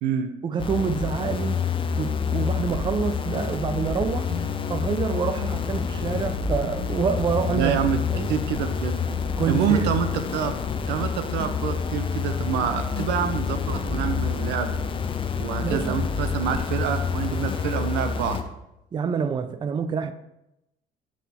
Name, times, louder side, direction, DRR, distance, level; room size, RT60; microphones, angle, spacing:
voice 1, 0.4-1.6 2.0-4.3 4.7-7.8 8.1-8.3 9.4-9.9 15.6-16.0 18.9-20.1, right 6 dB, 25° right, 10 dB, 0.4 m, -27 dB
sound 1, 0.6-18.4, left 6 dB, 30° left, 0.5 m, -28 dB
sound 2, 4.3-12.7, left 9 dB, 10° right, 1.7 m, -45 dB
voice 2, 7.5-9.0 9.4-10.5 10.9-14.7 15.4-18.4, right 8 dB, 90° right, 9 dB, 0.6 m, -27 dB
6.1 x 3.6 x 4.3 m, 0.88 s
cardioid pair, 110°, 17 cm